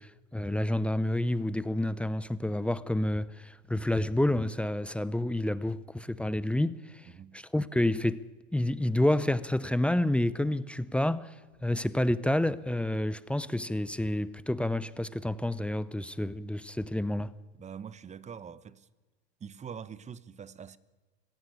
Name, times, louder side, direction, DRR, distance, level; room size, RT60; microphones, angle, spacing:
voice 1, 0.0-8.3 8.5-11.3 11.6-17.3, left 1 dB, 5° left, 0.7 m, -29 dB
voice 2, 7.1-7.4 17.5-18.9 19.4-20.8, right 7 dB, 20° right, 1.0 m, -44 dB
23.5 x 16.5 x 9.8 m
hypercardioid pair, 110°, 33 cm